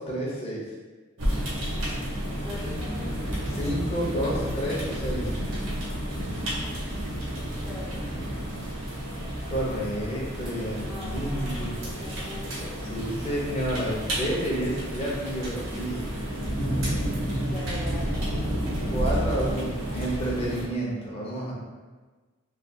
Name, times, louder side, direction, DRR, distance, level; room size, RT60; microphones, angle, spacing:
voice 1, 0.1-0.6 3.5-5.3 9.5-11.8 12.9-16.1 18.9-21.5, right 1 dB, 30° left, -4 dB, 0.7 m, -30 dB
sound 1, 1.2-20.6, equal, 70° right, 0.9 m, -31 dB
voice 2, 2.4-3.1 7.6-8.3 10.8-12.9 17.5-18.8, left 1 dB, 5° right, -9 dB, 0.5 m, -41 dB
3.3 x 2.8 x 2.6 m, 1.3 s
head